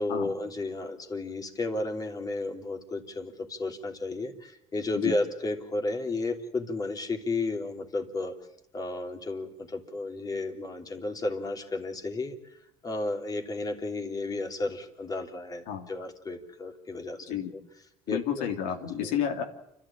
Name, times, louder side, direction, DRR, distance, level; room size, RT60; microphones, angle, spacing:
voice 1, 0.0-8.3 8.7-12.4 12.8-17.4 18.1-18.4 19.0-19.2, left 2 dB, 30° left, 3 dB, 3.2 m, -33 dB
voice 2, 18.1-19.4, left 9 dB, 85° left, 4 dB, 3.3 m, -30 dB
29.5 x 12.5 x 8.8 m, 0.81 s
cardioid pair, 110°, 13 cm